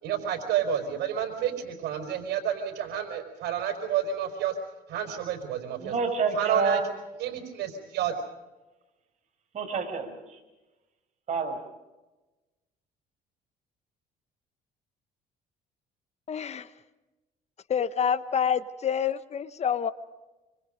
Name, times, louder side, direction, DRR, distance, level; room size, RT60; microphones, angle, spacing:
voice 1, 0.0-4.6 4.9-5.9 6.3-6.8 7.2-8.1, right 9 dB, 80° right, 7 dB, 4.9 m, -30 dB
voice 2, 5.8-6.9 9.5-10.4 11.3-11.6, right 4 dB, 45° right, 4 dB, 6.2 m, -28 dB
voice 3, 16.3-16.7 17.7-19.9, left 8 dB, 40° left, 14 dB, 1.0 m, -27 dB
26.5 x 25.5 x 5.1 m, 1.1 s
cardioid pair, 110°, 17 cm